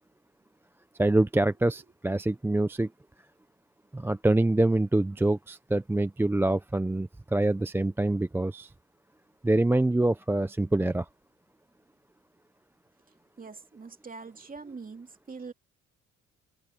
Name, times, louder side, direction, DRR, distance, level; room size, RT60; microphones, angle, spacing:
voice 1, 1.0-2.9 3.9-8.7 9.4-11.1, right 2 dB, 10° right, 0.5 m, -25 dB
voice 2, 13.4-15.5, right 4 dB, 30° right, 2.6 m, -43 dB
open air
cardioid pair, 90°, 30 cm